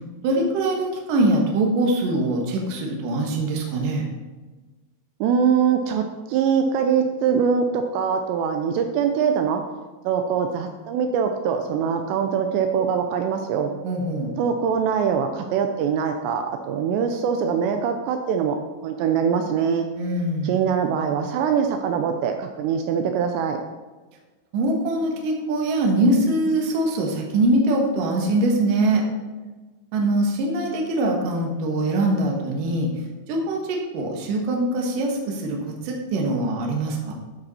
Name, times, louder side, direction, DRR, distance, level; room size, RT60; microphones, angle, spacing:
voice 1, 0.2-4.1 13.8-14.4 19.9-20.6 24.5-29.0 29.9-32.9 33.3-37.1, right 1 dB, 65° right, 1 dB, 2.2 m, -23 dB
voice 2, 5.2-9.6 10.0-13.7 14.4-18.6 18.8-19.9 20.4-23.6, right 7 dB, 90° right, 5 dB, 2.4 m, -23 dB
12.5 x 5.4 x 4.2 m, 1.3 s
omnidirectional pair, 5.7 m